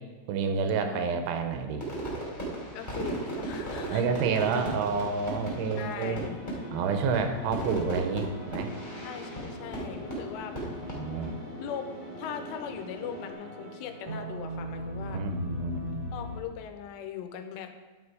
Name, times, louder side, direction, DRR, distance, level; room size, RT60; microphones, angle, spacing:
voice 1, 0.3-1.9 3.9-6.2 6.7-8.7 10.9-11.3 15.0-16.1, right 5 dB, 85° right, 6 dB, 2.9 m, -29 dB
Fireworks, 1.8-11.3, right 2 dB, 15° left, 2.2 m, -37 dB
voice 2, 2.7-4.1 4.5-4.8 5.8-6.4 9.0-10.7 11.6-15.2 16.1-17.8, left 8 dB, 85° left, 8 dB, 2.8 m, -40 dB
sound 1, 2.7-16.4, right 1 dB, 45° right, 1.9 m, -42 dB
sound 2, 6.4-13.3, left 2 dB, 70° left, 1.3 m, -44 dB
9.9 x 6.0 x 4.9 m, 1.4 s
omnidirectional pair, 4.9 m